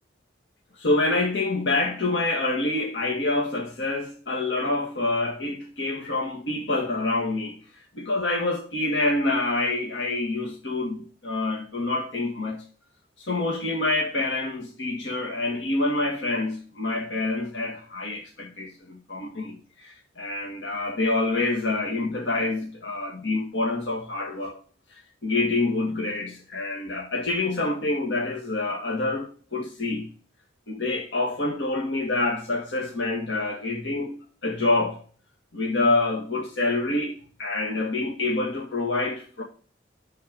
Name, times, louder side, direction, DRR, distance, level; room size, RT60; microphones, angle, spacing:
voice 1, 0.7-7.6 7.9-12.6 13.2-24.6 24.9-30.1 30.7-35.0 35.5-39.4, left 2 dB, 70° left, 2.0 m, -27 dB
11.5 x 4.4 x 5.3 m
head